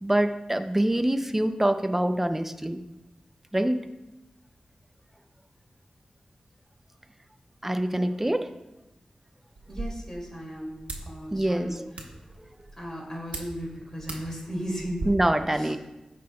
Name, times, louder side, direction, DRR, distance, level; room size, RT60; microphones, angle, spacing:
voice 1, 0.0-2.8 3.5-3.9 7.6-8.5 11.3-11.9 15.0-15.8, right 1 dB, 15° right, 8 dB, 0.5 m, -25 dB
sound 1, 9.6-15.1, right 2 dB, 90° right, 1.2 m, -41 dB
voice 2, 9.7-11.8 12.8-15.1 15.5-15.7, equal, 25° left, -3 dB, 2.3 m, -36 dB
14.0 x 5.2 x 2.3 m, 1.0 s
wide cardioid pair, 100°, 2 cm